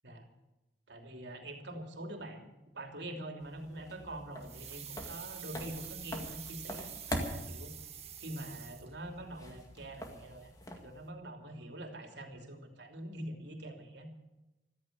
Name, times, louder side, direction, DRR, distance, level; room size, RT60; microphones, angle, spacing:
voice 1, 0.9-7.7 8.2-14.1, right 1 dB, 70° right, 3 dB, 3.0 m, -45 dB
sound 1, 3.4-11.1, equal, 20° left, 2.0 m, -44 dB
sound 2, 4.4-9.2 9.5-9.6, right 10 dB, 35° right, 1.9 m, -47 dB
15.0 x 14.0 x 6.7 m, 1.0 s
head